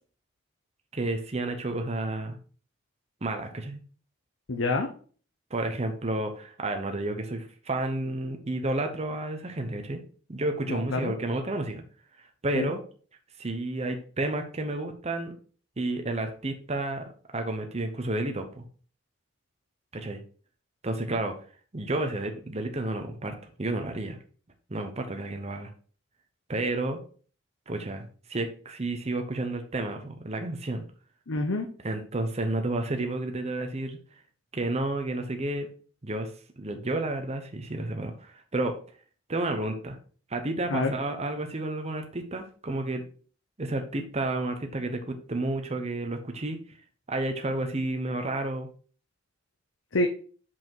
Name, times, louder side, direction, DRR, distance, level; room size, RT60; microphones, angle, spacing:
voice 1, 0.9-2.4 3.2-3.8 5.5-10.0 10.3-11.8 12.4-12.8 13.4-15.3 15.8-18.6 19.9-20.2 20.8-21.3 21.7-24.2 24.7-25.7 26.5-27.0 27.7-30.8 31.8-34.0 34.5-35.7 36.0-36.3 36.6-38.8 39.3-40.0 40.3-43.0 43.6-46.6 47.1-48.7, right 2 dB, 30° right, 5 dB, 0.8 m, -31 dB
voice 2, 4.5-4.9 10.7-11.1 12.5-12.7 31.3-31.7 40.7-40.9 49.9-50.1, left 2 dB, 70° left, 4 dB, 0.8 m, -27 dB
5.7 x 5.2 x 4.6 m, 0.42 s
head